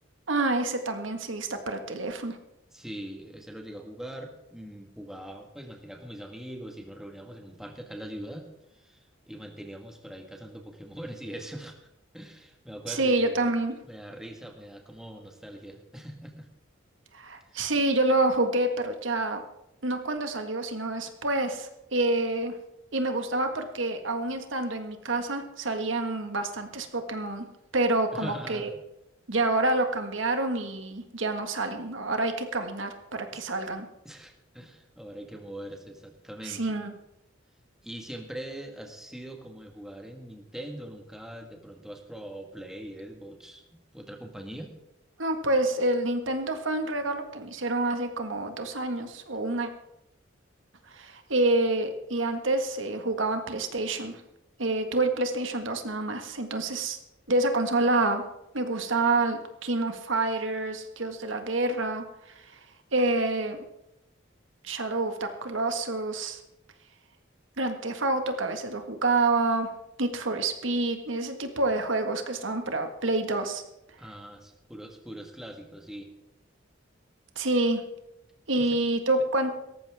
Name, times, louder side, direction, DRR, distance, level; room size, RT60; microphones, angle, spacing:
voice 1, 0.3-2.4 12.9-13.7 17.1-19.4 19.8-22.5 22.9-27.4 27.7-28.7 29.3-33.9 36.4-36.9 45.2-49.7 50.9-54.2 54.6-57.0 57.3-58.2 58.5-62.0 62.3-62.4 62.9-63.6 64.6-66.4 67.6-69.7 70.0-73.6 77.3-77.8 78.5-79.6, right 2 dB, 80° right, 6 dB, 1.7 m, -27 dB
voice 2, 2.7-13.5 13.8-16.5 17.5-17.7 28.1-28.8 33.3-33.4 34.0-36.7 37.8-44.7 74.0-76.1 78.5-78.8, right 1 dB, 5° right, 2 dB, 1.7 m, -42 dB
18.0 x 14.0 x 3.6 m, 0.87 s
head